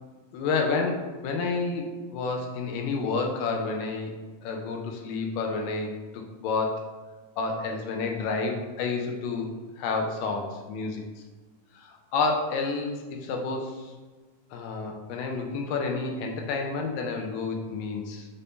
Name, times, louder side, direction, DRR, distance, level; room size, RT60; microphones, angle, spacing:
voice 1, 0.3-6.9 7.4-9.5 9.8-11.0 11.7-13.9 14.5-18.3, left 4 dB, 85° left, 2 dB, 2.2 m, -30 dB
5.5 x 3.5 x 2.6 m, 1.3 s
omnidirectional pair, 3.9 m